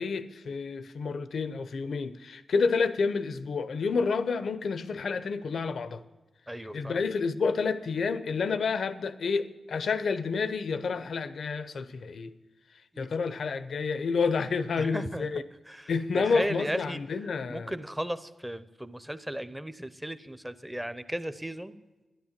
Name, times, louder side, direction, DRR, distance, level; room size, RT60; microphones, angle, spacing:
voice 1, 0.0-6.0 6.7-12.3 13.0-15.4 15.9-17.7, left 5 dB, 70° left, 0.7 m, -29 dB
voice 2, 6.5-7.0 12.9-13.1 14.8-15.3 15.7-17.0 17.5-21.8, right 1 dB, 5° right, 0.6 m, -35 dB
12.5 x 10.0 x 7.4 m
wide cardioid pair, 115°, 0 cm